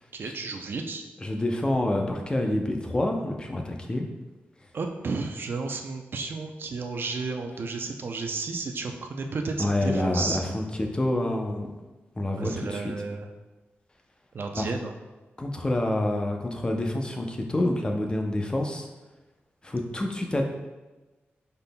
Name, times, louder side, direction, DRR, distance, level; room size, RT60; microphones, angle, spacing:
voice 1, 0.1-1.0 4.7-10.6 12.4-13.3 14.3-14.9, right 4 dB, 60° right, 4 dB, 0.5 m, -32 dB
voice 2, 1.2-4.1 9.6-11.7 12.2-12.8 14.5-14.7 15.4-18.9 19.6-20.4, left 1 dB, 20° left, 3 dB, 0.6 m, -27 dB
5.3 x 4.0 x 2.2 m, 1.1 s
wide cardioid pair, 100°, 4 cm